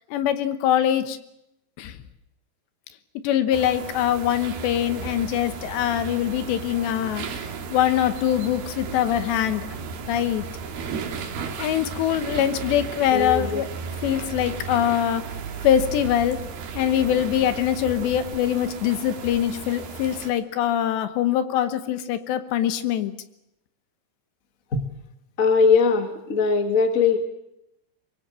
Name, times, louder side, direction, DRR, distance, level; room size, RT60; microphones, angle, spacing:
voice 1, 0.1-1.2 1.8-1.9 3.2-7.3 7.7-9.7 10.1-10.5 11.6-13.7 14.0-15.2 15.6-16.4 16.8-23.1, left 10 dB, 75° left, 11 dB, 3.2 m, -23 dB
sound 1, 3.5-20.3, right 5 dB, 60° right, 3.8 m, -35 dB
voice 2, 13.1-13.7 24.7-24.8 25.4-27.2, left 5 dB, 40° left, 6 dB, 1.1 m, -20 dB
24.0 x 23.0 x 7.6 m, 0.83 s
omnidirectional pair, 5.3 m